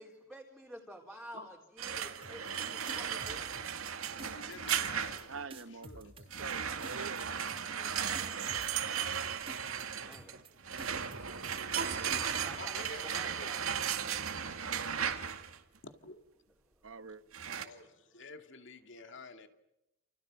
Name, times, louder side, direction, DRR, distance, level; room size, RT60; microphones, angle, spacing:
voice 1, 0.0-3.6 10.0-10.4 12.2-13.8, equal, ahead, 3.9 m, -50 dB
sound 1, 1.8-5.4 6.3-15.6 17.3-17.6, right 8 dB, 90° right, 2.2 m, -36 dB
sound 2, 2.2-2.6 2.9-3.9 4.2-4.6 4.8-5.2 5.5-6.5 6.8-7.2 7.5-7.9 8.1-9.2 9.5-9.8 10.1-10.5 10.8-11.8 12.1-12.5, right 2 dB, 25° right, 2.8 m, -50 dB
voice 2, 4.2-6.3 7.7-7.9 12.6-13.5 15.8-16.2 17.6-19.5, left 3 dB, 60° left, 2.3 m, -50 dB
voice 3, 5.3-7.3 16.8-17.2, right 4 dB, 70° right, 1.1 m, -46 dB
sound 3, 11.7-13.1, right 5 dB, 50° right, 2.9 m, -43 dB
29.5 x 29.5 x 6.5 m
head